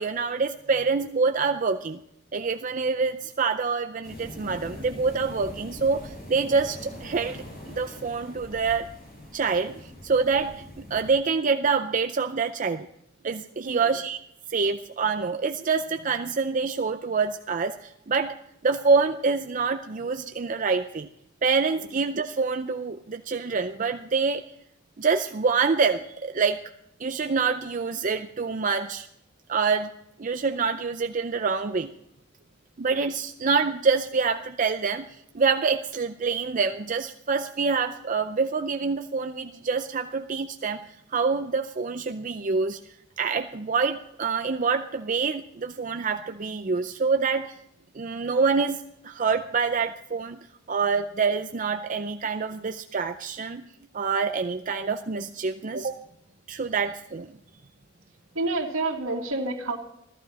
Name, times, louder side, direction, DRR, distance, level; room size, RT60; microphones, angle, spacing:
voice 1, 0.0-2.0 2.3-8.9 9.3-12.9 13.2-14.2 14.5-18.4 18.6-21.1 21.4-24.4 25.0-26.6 27.0-29.1 29.5-29.9 30.2-31.9 32.8-42.8 43.2-47.6 47.9-50.4 50.7-53.6 53.9-56.0 56.5-57.3, right 5 dB, 40° right, 7 dB, 0.5 m, -26 dB
sound 1, 4.0-11.2, left 1 dB, 50° left, 6.0 m, -42 dB
voice 2, 58.3-59.8, right 2 dB, 90° right, 0 dB, 2.3 m, -28 dB
14.5 x 14.0 x 4.2 m, 0.77 s
head